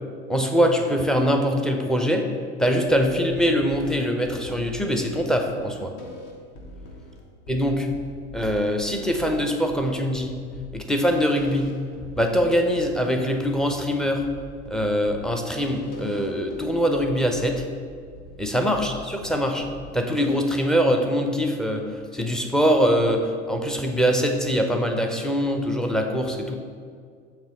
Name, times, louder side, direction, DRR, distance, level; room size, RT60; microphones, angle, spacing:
voice 1, 0.3-2.3 2.6-5.9 7.5-7.9 8.3-10.4 10.7-11.7 12.2-14.3 14.7-17.6 18.4-19.7 19.9-26.6, equal, ahead, 4 dB, 0.5 m, -23 dB
sound 1, 2.9-20.4, left 1 dB, 45° left, 1.1 m, -43 dB
7.2 x 3.1 x 6.1 m, 2.1 s
figure-of-eight pair, 75°, 35 cm